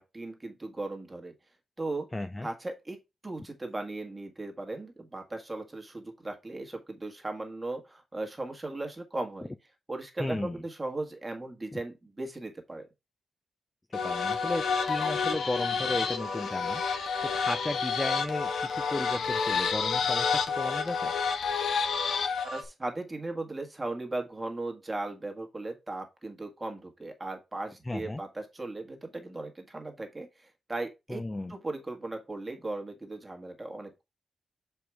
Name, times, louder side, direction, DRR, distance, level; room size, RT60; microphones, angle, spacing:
voice 1, 0.0-1.3 1.8-2.1 2.4-9.5 9.9-12.9 22.4-31.2 31.5-34.0, right 2 dB, 15° right, 1.5 m, -37 dB
voice 2, 2.1-2.5 10.2-10.6 11.7-11.8 13.9-21.1 27.9-28.2 31.1-31.5, left 2 dB, 15° left, 0.4 m, -35 dB
sound 1, 13.9-22.6, left 5 dB, 80° left, 1.1 m, -29 dB
7.0 x 4.6 x 3.5 m
wide cardioid pair, 155°, 0 cm